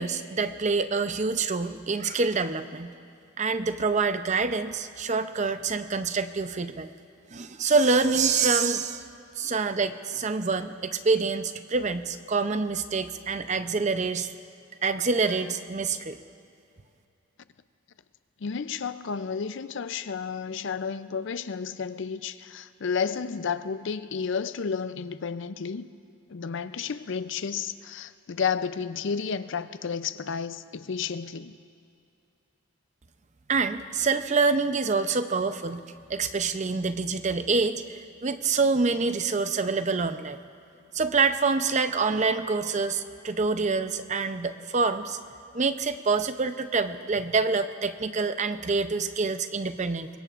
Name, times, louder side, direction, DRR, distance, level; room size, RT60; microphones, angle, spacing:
voice 1, 0.0-2.9 3.4-6.9 7.3-9.0 9.4-14.3 14.8-16.2 33.5-35.8 36.1-40.4 40.9-45.2 45.5-50.1, right 4 dB, 35° right, 0.6 m, -26 dB
voice 2, 18.4-25.9 26.3-31.6, left 6 dB, 60° left, 0.5 m, -31 dB
23.5 x 21.0 x 2.5 m
head